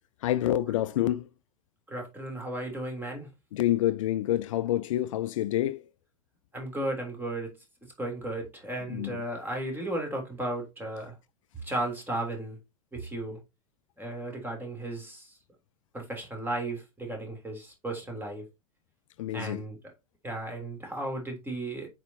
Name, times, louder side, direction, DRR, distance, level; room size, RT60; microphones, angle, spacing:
voice 1, 0.2-1.3 3.5-5.8 8.9-9.2 19.2-19.6, left 13 dB, 60° left, 0.4 m, -27 dB
voice 2, 1.9-3.3 6.5-7.5 8.0-11.1 11.6-12.6 12.9-13.4 14.0-15.4 15.9-18.5 19.3-19.8 20.2-21.9, right 1 dB, 10° right, 3.2 m, -35 dB
8.1 x 4.9 x 2.8 m
figure-of-eight pair, 80°, 19 cm